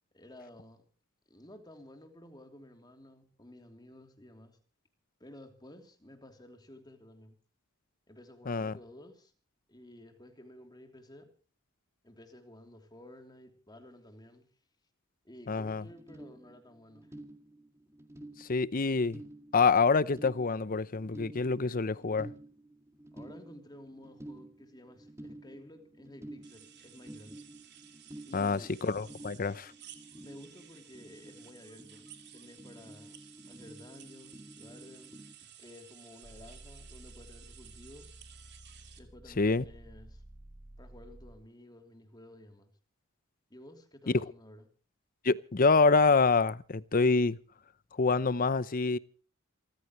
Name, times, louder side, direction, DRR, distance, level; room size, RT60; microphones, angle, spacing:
voice 1, 0.1-0.8 1.3-4.6 5.2-7.3 8.1-9.3 9.7-11.3 12.0-14.5 15.2-17.2 23.1-27.3 28.2-28.8 30.2-32.0 32.3-33.2 33.5-38.2 39.0-40.2 40.8-42.7 43.5-44.7, left 1 dB, 20° left, 3.1 m, -53 dB
voice 2, 15.5-15.8 18.4-19.2 19.5-22.3 28.3-29.7 39.4-39.6 44.1-44.2 45.2-47.4 48.0-49.0, left 4 dB, 40° left, 0.7 m, -26 dB
sound 1, 15.8-35.3, right 1 dB, 15° right, 1.9 m, -51 dB
sound 2, 26.4-39.0, right 10 dB, 55° right, 2.8 m, -55 dB
sound 3, 36.2-41.5, right 1 dB, 35° right, 1.3 m, -52 dB
28.0 x 14.5 x 3.1 m
head